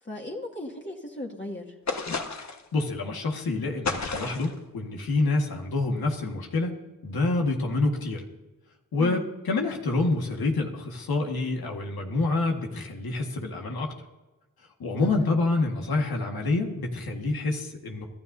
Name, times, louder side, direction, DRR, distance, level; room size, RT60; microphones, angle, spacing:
voice 1, 0.0-1.8 9.0-9.3 15.0-15.1, left 1 dB, 30° left, -2 dB, 2.1 m, -37 dB
sound 1, 1.9-2.7 3.8-4.6, left 3 dB, 50° left, 1.4 m, -31 dB
voice 2, 2.7-6.8 7.0-8.2 8.9-13.9 14.8-18.1, left 3 dB, 85° left, 1 dB, 1.8 m, -27 dB
25.0 x 12.5 x 2.7 m, 1.1 s
cardioid pair, 45°, 36 cm